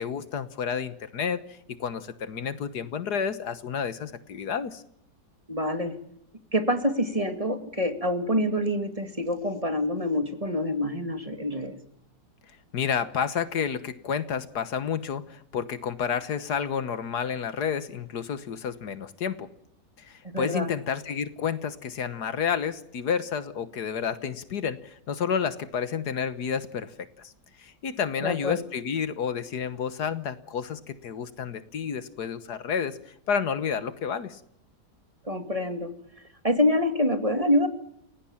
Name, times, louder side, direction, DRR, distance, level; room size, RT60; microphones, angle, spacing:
voice 1, 0.0-4.8 12.7-19.5 20.0-27.3 27.6-34.4, left 7 dB, 70° left, 14 dB, 1.7 m, -30 dB
voice 2, 5.5-6.0 6.5-11.8 20.3-20.7 28.2-28.6 35.2-35.9 36.4-37.7, left 1 dB, 20° right, 8 dB, 2.2 m, -26 dB
29.5 x 17.5 x 7.3 m, 0.74 s
omnidirectional pair, 1.8 m